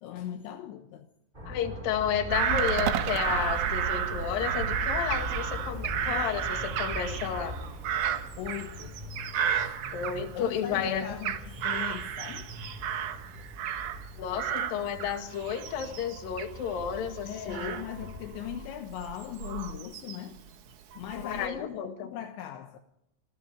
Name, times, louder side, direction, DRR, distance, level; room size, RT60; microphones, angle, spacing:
voice 1, 0.0-1.1 8.4-9.0 9.6-9.8 10.3-12.5 17.2-20.4 21.0-22.8, left 11 dB, 75° left, 3.2 m, -39 dB
sound 1, 1.3-18.6, equal, 15° right, 1.7 m, -42 dB
voice 2, 1.5-7.6 9.9-11.1 14.2-17.7 21.2-22.1, left 8 dB, 55° left, 3.3 m, -32 dB
Bird vocalization bird call bird song / Crow, 2.3-10.6 11.0-14.1 14.4-20.4 20.9-21.5, right 8 dB, 70° right, 1.8 m, -32 dB
sound 2, 2.6-4.9, right 10 dB, 90° right, 3.8 m, -36 dB
26.5 x 21.5 x 4.9 m
omnidirectional pair, 5.6 m